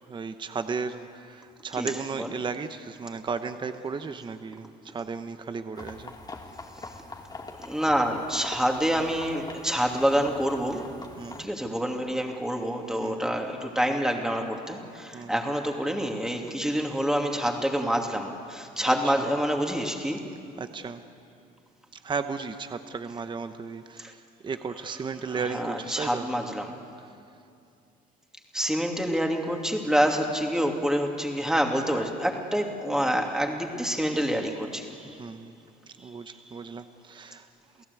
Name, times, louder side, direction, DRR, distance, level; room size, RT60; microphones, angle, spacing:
voice 1, 0.1-6.1 11.2-11.4 13.0-13.3 15.1-15.3 18.9-19.3 20.6-21.0 22.0-26.3 27.0-27.1 35.2-35.6 36.0-37.5, right 5 dB, 25° right, 9 dB, 0.9 m, -35 dB
voice 2, 1.7-2.3 7.6-10.9 11.4-20.2 24.0-24.1 25.3-26.8 28.5-35.1, equal, 5° right, 2 dB, 2.6 m, -27 dB
sound 1, 5.8-11.5, left 3 dB, 25° left, 2.0 m, -43 dB
29.0 x 17.0 x 8.3 m, 2.5 s
cardioid pair, 110°, 17 cm